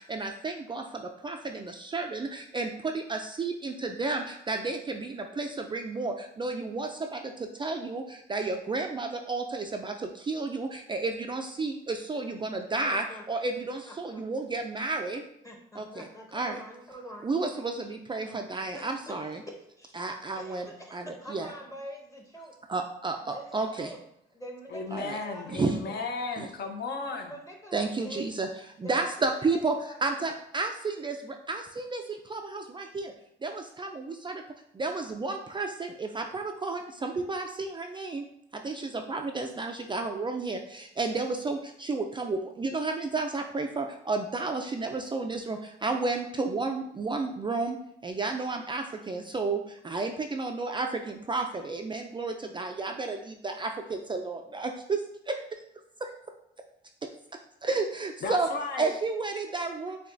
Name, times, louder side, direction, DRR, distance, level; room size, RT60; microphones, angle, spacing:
voice 1, 0.0-15.2 15.8-16.6 17.2-19.4 19.9-21.5 22.7-23.9 24.9-25.2 25.5-25.8 26.4-26.5 27.7-28.5 28.8-29.7 30.0-33.1 33.4-34.4 34.7-38.2 38.5-47.8 48.0-55.6 56.0-56.1 57.6-58.5 58.8-60.0, right 3 dB, 25° right, 4 dB, 0.3 m, -32 dB
voice 2, 12.8-13.2 13.9-14.2 14.8-14.9 15.4-17.3 18.3-18.4 18.7-22.5 23.2-24.0 24.3-25.5 25.8-26.0 27.1-28.3 28.8-29.0 29.3-30.0, equal, 15° left, 0 dB, 0.9 m, -45 dB
voice 3, 24.7-27.3 58.2-58.9, left 4 dB, 55° left, 4 dB, 0.7 m, -34 dB
6.6 x 2.3 x 2.5 m, 0.74 s
cardioid pair, 90°, 20 cm